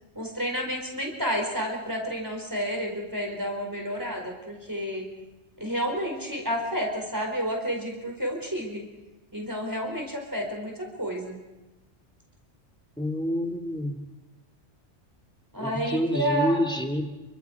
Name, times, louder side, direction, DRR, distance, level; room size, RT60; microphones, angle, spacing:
voice 1, 0.1-5.0 5.6-8.8 9.3-11.4 15.5-16.7, equal, 15° right, 1 dB, 4.7 m, -30 dB
voice 2, 13.0-14.0 15.6-17.0, equal, 5° left, 5 dB, 2.3 m, -27 dB
28.5 x 24.5 x 4.7 m, 1.1 s
omnidirectional pair, 1.2 m